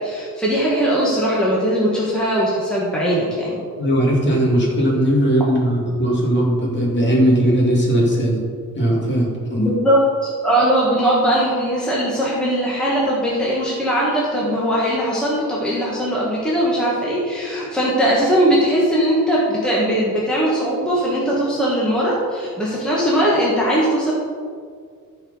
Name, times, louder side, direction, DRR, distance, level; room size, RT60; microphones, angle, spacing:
voice 1, 0.0-3.5 9.6-10.0 10.4-24.1, right 1 dB, ahead, -7 dB, 1.6 m, -19 dB
voice 2, 3.8-8.4 8.7-9.7, equal, 30° left, -3 dB, 2.5 m, -18 dB
14.0 x 4.9 x 5.6 m, 2.1 s
wide cardioid pair, 175°, 35 cm